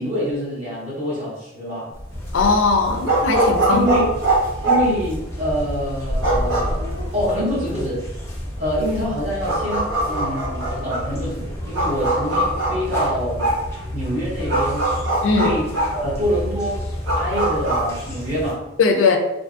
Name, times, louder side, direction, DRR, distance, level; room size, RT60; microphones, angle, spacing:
voice 1, 0.0-1.9 3.7-4.2 4.6-6.9 7.1-8.1 8.6-13.6 13.9-14.9 15.3-16.9 17.1-18.7, equal, 35° right, -8 dB, 0.8 m, -26 dB
sound 1, 2.0-17.8, right 1 dB, 75° right, 0.8 m, -23 dB
sound 2, 2.1-18.5, left 1 dB, 15° left, 0.6 m, -32 dB
voice 2, 2.3-3.9 15.2-15.5 18.8-19.2, left 4 dB, 75° left, 4 dB, 0.4 m, -19 dB
2.5 x 2.5 x 2.4 m, 0.95 s
head